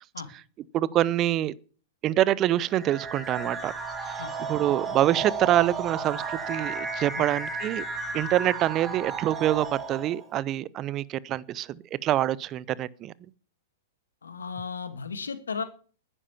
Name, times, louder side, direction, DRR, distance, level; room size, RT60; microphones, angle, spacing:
voice 1, 0.7-1.5 2.0-3.7 4.5-7.8 8.1-13.1, right 13 dB, 35° right, 0.6 m, -25 dB
sound 1, 2.7-10.3, right 4 dB, 15° right, 2.9 m, -34 dB
voice 2, 14.2-15.6, left 5 dB, 85° left, 1.8 m, -35 dB
10.0 x 9.9 x 7.1 m
hypercardioid pair, 110°, 0 cm